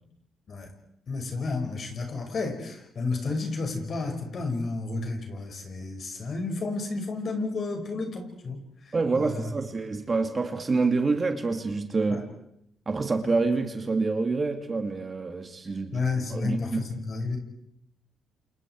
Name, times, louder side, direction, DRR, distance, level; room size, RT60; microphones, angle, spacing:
voice 1, 1.1-9.5 12.1-12.2 15.9-17.4, left 3 dB, 50° left, 4 dB, 6.0 m, -31 dB
voice 2, 8.9-12.3 12.9-16.0 16.3-16.8, right 3 dB, 30° right, 5 dB, 2.6 m, -27 dB
29.0 x 28.0 x 4.8 m, 0.77 s
cardioid pair, 90°, 0 cm